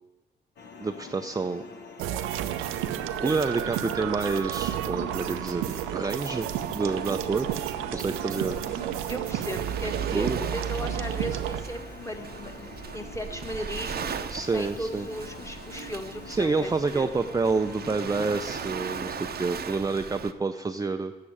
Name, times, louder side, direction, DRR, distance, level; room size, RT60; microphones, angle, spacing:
sound 1, 0.6-19.6, left 5 dB, 55° left, 1.2 m, -45 dB
voice 1, 0.8-1.6 3.2-5.6 5.9-6.5 6.7-7.5 7.9-8.6 10.1-10.4 14.3-15.1 16.3-21.1, right 4 dB, 15° right, 7 dB, 0.5 m, -28 dB
sound 2, 2.0-11.6, right 11 dB, 80° right, 0.6 m, -31 dB
Waves surf, 6.3-20.3, right 7 dB, 50° right, 0.7 m, -39 dB
voice 2, 9.1-14.3 14.5-17.1, equal, 15° left, 3 dB, 1.6 m, -36 dB
8.4 x 6.6 x 8.5 m, 1.2 s
hypercardioid pair, 50°, 21 cm